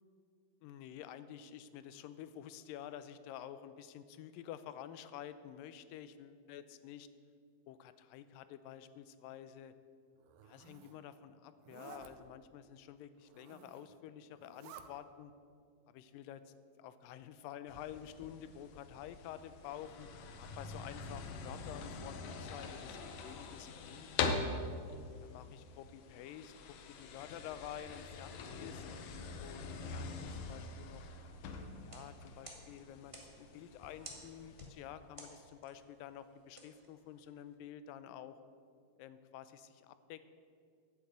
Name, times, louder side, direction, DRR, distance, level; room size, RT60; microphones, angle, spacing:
voice 1, 0.6-7.1 7.7-9.7 10.4-15.3 15.9-20.1 20.4-24.5 25.2-26.5 27.0-28.8 29.4-31.0 31.8-38.4 39.0-40.3, left 10 dB, 85° left, 13 dB, 2.3 m, -50 dB
Zipper (clothing), 10.2-11.0 11.6-12.1 13.2-13.9 14.3-14.9, right 9 dB, 80° right, 2.4 m, -55 dB
sound 1, 17.7-34.7, left 4 dB, 70° left, 1.9 m, -44 dB
sound 2, 31.8-37.5, right 1 dB, 35° right, 0.5 m, -57 dB
10.5 x 8.8 x 8.2 m, 2.2 s
omnidirectional pair, 4.0 m